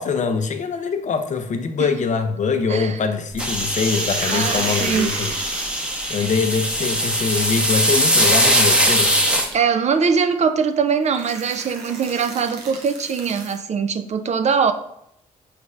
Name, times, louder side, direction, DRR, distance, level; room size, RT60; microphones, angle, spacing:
voice 1, 0.0-5.3 6.1-9.1, left 5 dB, 45° left, 8 dB, 0.5 m, -23 dB
voice 2, 2.7-3.0 4.3-5.1 6.0-6.3 9.5-14.7, right 6 dB, 40° right, 9 dB, 0.4 m, -22 dB
sound 1, 3.4-9.5, equal, 5° right, 0.7 m, -20 dB
sound 2, 3.8-6.3 7.7-9.5 10.6-10.7 11.1-13.6, right 3 dB, 80° right, 0.7 m, -34 dB
4.9 x 3.2 x 2.4 m, 0.74 s
hypercardioid pair, 50°, 17 cm